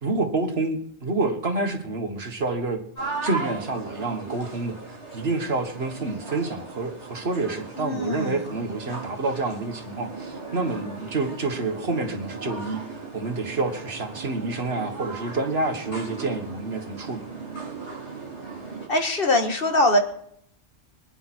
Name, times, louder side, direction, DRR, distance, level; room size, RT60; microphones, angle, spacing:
voice 1, 0.0-2.8 3.2-4.8 5.1-12.8 13.1-17.2, right 3 dB, 65° right, 6 dB, 1.9 m, -28 dB
sound 1, 2.9-18.9, right 4 dB, 75° left, 5.8 m, -37 dB
voice 2, 7.8-8.5 18.9-20.0, left 1 dB, 55° left, 6 dB, 1.9 m, -22 dB
25.0 x 10.0 x 4.4 m, 0.67 s
omnidirectional pair, 1.1 m